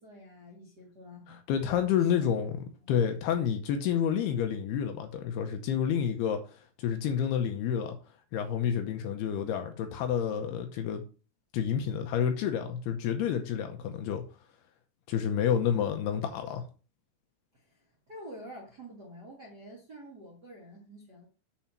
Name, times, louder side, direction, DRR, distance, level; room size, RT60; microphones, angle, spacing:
voice 1, 0.0-1.4 2.0-2.4 2.8-2.9 15.6-15.8 17.5-21.3, equal, 45° right, 1.4 m, -48 dB
voice 2, 1.3-2.5 2.9-8.0 8.3-11.0 11.5-14.2 15.1-16.6, left 8 dB, 75° left, 2.6 m, -29 dB
7.3 x 4.2 x 5.7 m
omnidirectional pair, 5.0 m